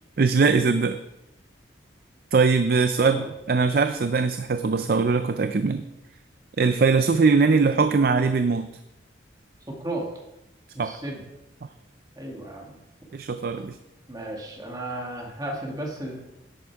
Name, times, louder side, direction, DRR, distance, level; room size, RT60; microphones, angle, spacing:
voice 1, 0.2-1.0 2.3-3.2 3.5-5.9 6.6-8.7 10.8-11.0 13.1-13.8, right 4 dB, 50° right, 10 dB, 0.4 m, -21 dB
voice 2, 9.7-10.1 10.7-11.2 12.2-12.8 14.1-16.2, right 1 dB, 20° right, 0 dB, 1.8 m, -33 dB
11.0 x 8.4 x 4.6 m, 0.92 s
head